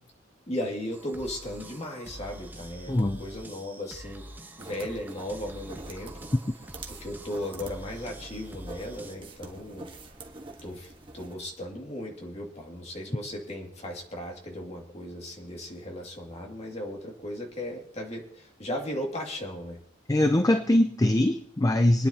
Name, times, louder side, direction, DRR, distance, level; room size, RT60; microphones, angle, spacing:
voice 1, 0.5-4.3 4.6-6.3 6.9-9.9 10.6-19.8, left 1 dB, 35° left, 0 dB, 2.4 m, -36 dB
sound 1, 0.9-9.2, right 1 dB, 10° right, 1.1 m, -45 dB
voice 2, 2.9-3.2 20.1-22.1, left 1 dB, 20° left, 8 dB, 0.5 m, -22 dB
sound 2, 4.6-11.3, right 2 dB, 25° right, 1.4 m, -46 dB
25.0 x 10.0 x 2.9 m, 0.71 s
head